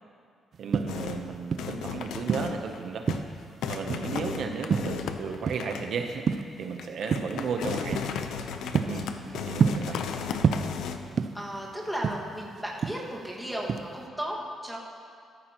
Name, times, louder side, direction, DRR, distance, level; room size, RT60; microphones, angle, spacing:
sound 1, 0.5-1.8 2.2-3.5 3.9-4.3 4.7-5.8 6.1-6.7 7.1-7.4 7.9-8.1 8.5-10.1 10.4-11.6 11.9-13.4 13.7-14.0, right 6 dB, 45° right, 0.4 m, -27 dB
voice 1, 0.6-3.1 3.7-8.0 8.9-9.1 9.3-10.0, right 5 dB, 65° right, 5 dB, 0.7 m, -34 dB
sound 2, 0.9-1.3 1.6-2.8 3.1-3.3 3.6-5.9 6.3-6.4 6.8-11.0, left 7 dB, 85° left, 0.6 m, -35 dB
voice 2, 8.9-9.4 11.3-14.8, equal, ahead, -4 dB, 1.8 m, -35 dB
14.0 x 14.0 x 3.0 m, 2.2 s
cardioid pair, 130°, 0 cm